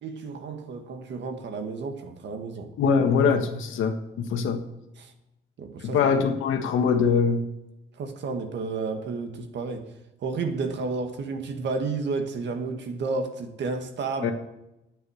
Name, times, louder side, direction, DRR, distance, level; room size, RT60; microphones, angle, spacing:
voice 1, 0.0-2.7 5.0-5.1 5.6-6.0 8.0-9.9 10.2-14.3, right 4 dB, 65° right, 1.7 m, -31 dB
voice 2, 2.8-4.6 5.8-7.4 14.2-14.3, left 5 dB, 90° left, 1.5 m, -23 dB
10.0 x 9.0 x 6.4 m
cardioid pair, 120°, 20 cm